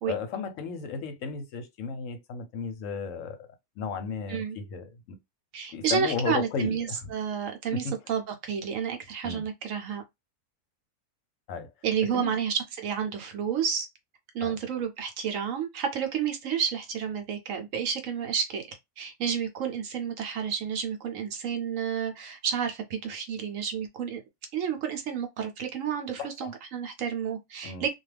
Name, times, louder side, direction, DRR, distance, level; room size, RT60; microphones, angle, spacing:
voice 1, 0.1-3.5 3.8-5.2 5.7-7.1 7.7-8.0 9.2-9.4 11.5-11.7 12.1-12.3 14.4-14.6 26.2-26.5 27.6-27.8, left 5 dB, 70° left, 0.9 m, -34 dB
voice 2, 5.5-10.0 11.8-13.9 14.3-24.2 24.5-27.9, right 7 dB, 70° right, 0.9 m, -30 dB
2.3 x 2.3 x 3.2 m
omnidirectional pair, 1.6 m